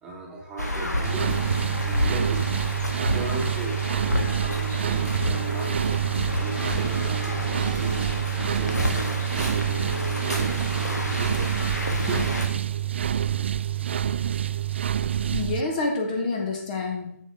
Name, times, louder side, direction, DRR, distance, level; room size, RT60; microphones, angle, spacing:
voice 1, 0.0-2.5 3.1-5.8 6.3-12.2, right 2 dB, 10° right, -2 dB, 1.4 m, -37 dB
sound 1, 0.6-12.5, left 1 dB, 90° left, 1.7 m, -30 dB
sound 2, 1.0-15.6, right 10 dB, 45° right, 0.3 m, -27 dB
voice 2, 15.3-17.2, left 3 dB, 30° left, 2 dB, 1.0 m, -28 dB
7.6 x 7.2 x 3.6 m, 0.72 s
figure-of-eight pair, 145°, 9 cm